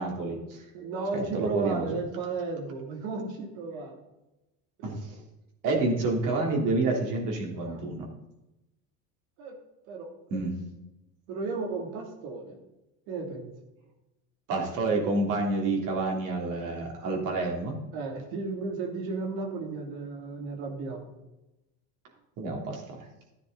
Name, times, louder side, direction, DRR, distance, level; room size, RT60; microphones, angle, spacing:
voice 1, 0.0-0.6 1.1-1.9 4.8-5.2 5.6-8.1 10.3-10.5 14.5-17.8 22.4-23.1, right 2 dB, 55° right, 0 dB, 3.4 m, -29 dB
voice 2, 0.7-4.0 4.8-4.9 7.6-7.8 9.4-9.6 9.9-10.1 11.3-12.6 13.1-13.5 17.9-21.1, right 3 dB, 80° right, 2 dB, 3.0 m, -34 dB
13.5 x 9.7 x 4.0 m, 0.95 s
cardioid pair, 150°, 37 cm